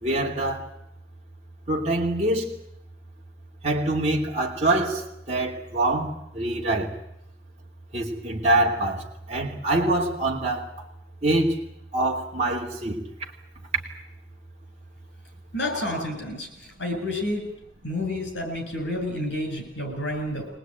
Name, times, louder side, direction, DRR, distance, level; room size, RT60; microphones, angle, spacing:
voice 1, 0.0-0.7 1.7-2.5 3.6-6.9 7.9-10.7 11.2-11.5 11.9-13.0, right 1 dB, 35° right, 2.9 m, -25 dB
voice 2, 15.5-16.5 16.8-17.4 17.8-20.5, left 1 dB, 65° left, 7.9 m, -29 dB
23.0 x 19.5 x 9.3 m
head